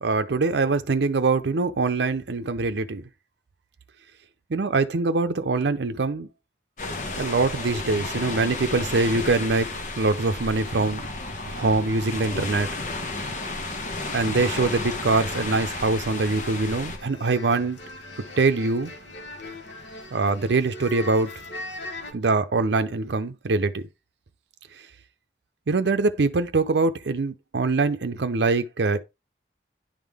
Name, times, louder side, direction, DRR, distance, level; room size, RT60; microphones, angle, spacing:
voice 1, 0.0-3.0 4.5-6.3 7.2-9.7 10.0-11.0 11.5-12.7 14.1-17.8 18.4-18.9 20.1-21.3 22.1-23.8 25.7-29.0, right 3 dB, 80° right, 0.6 m, -23 dB
sound 1, 6.8-17.0, left 2 dB, 45° left, 1.1 m, -32 dB
sound 2, 13.9-22.1, left 1 dB, 85° left, 1.2 m, -40 dB
10.5 x 3.7 x 3.5 m
head